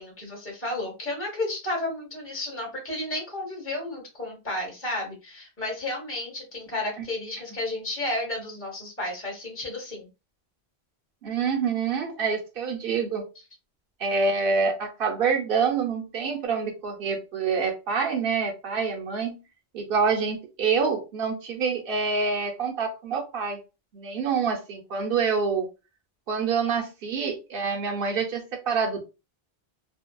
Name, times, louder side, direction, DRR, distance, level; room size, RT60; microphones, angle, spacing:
voice 1, 0.0-10.1, left 1 dB, 15° left, -2 dB, 0.9 m, -32 dB
voice 2, 11.2-13.3 14.0-19.4 19.7-23.6 23.9-25.7 26.3-29.1, right 5 dB, 60° right, 2 dB, 0.9 m, -26 dB
2.6 x 2.1 x 2.2 m, 0.29 s
omnidirectional pair, 1.1 m